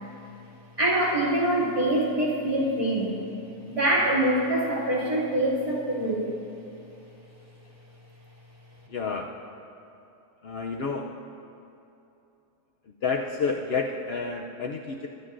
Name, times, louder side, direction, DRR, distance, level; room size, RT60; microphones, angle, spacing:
voice 1, 0.8-3.2 3.7-6.3, right 1 dB, 20° right, -8 dB, 2.5 m, -24 dB
voice 2, 8.9-9.3 10.4-11.1 13.0-15.1, left 4 dB, 80° left, 2 dB, 0.5 m, -29 dB
22.0 x 10.5 x 2.5 m, 2.8 s
omnidirectional pair, 1.7 m